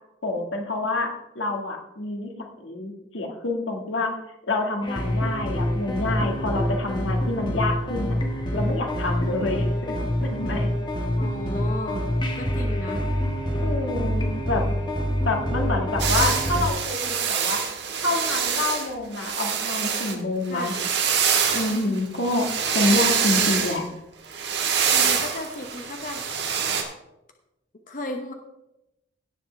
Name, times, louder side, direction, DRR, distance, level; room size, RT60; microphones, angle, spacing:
voice 1, 0.2-2.3 2.6-4.2 4.5-8.2 8.5-9.9 10.3-10.7 13.5-14.6 15.2-17.6 18.0-20.7 21.5-22.5 22.7-23.8, left 2 dB, 90° left, 2 dB, 1.7 m, -27 dB
sound 1, 4.8-16.7, equal, 25° left, 1.4 m, -26 dB
voice 2, 11.2-12.1 12.3-13.0 14.2-14.8 20.5-20.9 24.9-26.3 27.9-28.3, left 1 dB, 45° left, 4 dB, 0.9 m, -35 dB
sound 2, 16.0-20.1 20.5-23.8 24.3-26.8, right 7 dB, 60° right, 1.6 m, -25 dB
17.0 x 7.2 x 3.3 m, 0.90 s
head